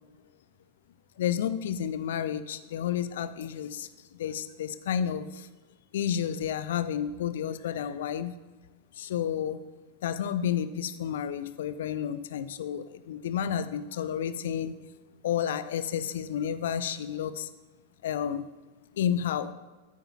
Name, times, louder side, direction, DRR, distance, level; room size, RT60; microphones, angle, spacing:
voice 1, 1.2-3.9 4.2-5.5 5.9-8.3 9.0-9.6 10.0-14.7 15.2-17.5 18.0-18.5 19.0-19.5, left 9 dB, 60° left, 13 dB, 0.5 m, -31 dB
14.0 x 8.8 x 2.9 m, 1.3 s
figure-of-eight pair, 90°, 0 cm